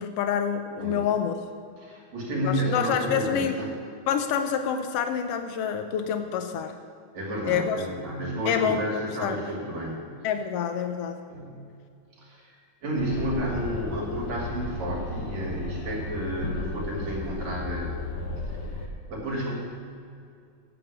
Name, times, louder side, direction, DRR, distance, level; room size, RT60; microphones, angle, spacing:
voice 1, 0.0-1.4 2.4-3.6 4.1-6.7 7.4-7.8 8.5-9.4 10.2-11.2, left 8 dB, 90° left, 7 dB, 1.3 m, -27 dB
voice 2, 1.8-3.7 7.1-10.0 11.3-11.7 12.2-12.6 12.8-18.0 18.5-18.8 19.1-19.5, equal, 60° right, -3 dB, 3.6 m, -31 dB
sound 1, 13.0-18.9, left 2 dB, 65° left, 1.5 m, -34 dB
9.1 x 7.8 x 8.0 m, 2.4 s
omnidirectional pair, 3.5 m